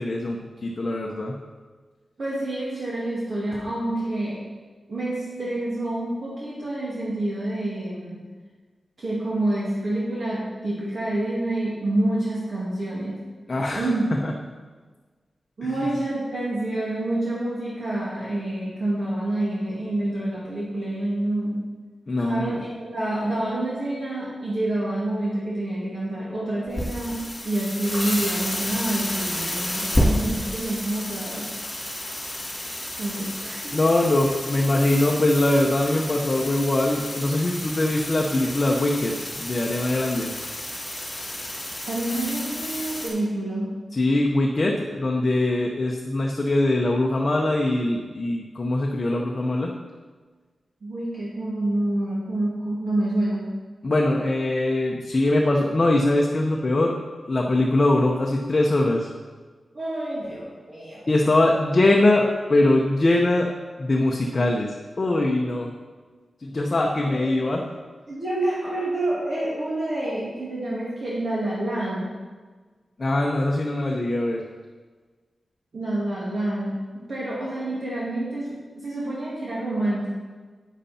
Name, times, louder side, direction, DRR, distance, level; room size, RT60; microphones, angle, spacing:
voice 1, 0.0-1.4 13.5-13.9 14.2-14.3 15.6-15.9 22.1-22.6 33.7-40.3 43.9-49.7 53.8-57.0 57.3-59.1 61.1-63.5 63.8-65.7 66.4-67.7 73.0-74.4, left 2 dB, 30° left, -1 dB, 0.8 m, -22 dB
voice 2, 2.2-4.4 4.9-8.2 9.0-13.2 13.7-14.1 15.6-21.6 22.2-31.5 33.0-33.8 41.8-43.7 50.8-53.5 59.7-61.1 67.0-67.2 68.1-72.1 75.7-80.1, right 1 dB, 45° right, -7 dB, 2.2 m, -27 dB
sound 1, 26.7-43.1, left 1 dB, 15° left, 3.5 m, -30 dB
11.0 x 9.2 x 4.3 m, 1.4 s
wide cardioid pair, 170°, 0 cm